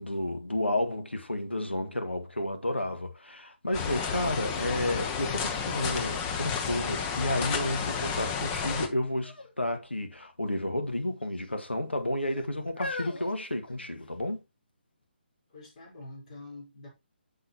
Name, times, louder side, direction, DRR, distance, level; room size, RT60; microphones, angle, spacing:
voice 1, 0.0-14.4, left 1 dB, 80° left, 1.6 m, -31 dB
Riverside walking past waterfalls, 3.7-8.9, left 6 dB, 20° left, 0.8 m, -31 dB
sound 1, 5.2-5.3 5.7-7.3 7.9-8.4 9.2-9.6 9.8-10.0 10.9-11.5 12.2-14.3 15.0-15.1, left 2 dB, 60° left, 1.5 m, -42 dB
voice 2, 15.5-16.9, left 2 dB, 40° left, 4.1 m, -46 dB
7.9 x 6.4 x 2.9 m
figure-of-eight pair, 145°, 6 cm